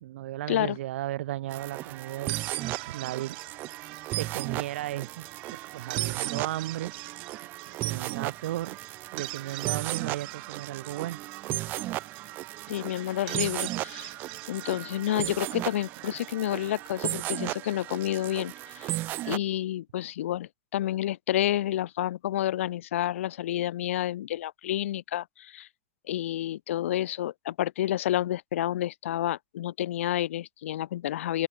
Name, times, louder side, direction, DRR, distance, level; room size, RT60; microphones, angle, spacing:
voice 1, 0.0-5.3 5.5-7.4 7.8-8.8 9.1-11.2, right 14 dB, 65° right, 1.3 m, -35 dB
sound 1, 1.5-19.4, right 17 dB, 25° right, 0.9 m, -35 dB
sound 2, 2.1-17.4, right 27 dB, 45° right, 2.8 m, -44 dB
voice 2, 12.7-14.1 14.5-18.9 19.3-25.7 26.1-31.5, left 13 dB, 75° left, 2.2 m, -29 dB
open air
supercardioid pair, 170°, 7 cm